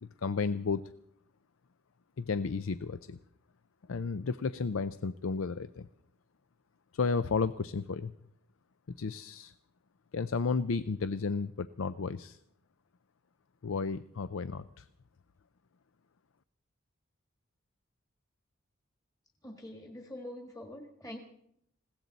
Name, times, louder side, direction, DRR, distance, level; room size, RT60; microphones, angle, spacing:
voice 1, 0.0-0.9 2.2-3.2 3.9-5.9 6.9-8.1 9.0-9.5 10.1-12.4 13.6-14.9, left 4 dB, 75° left, 14 dB, 0.5 m, -33 dB
voice 2, 19.4-21.2, left 1 dB, 15° left, 3 dB, 1.6 m, -44 dB
20.5 x 17.0 x 4.1 m, 0.72 s
head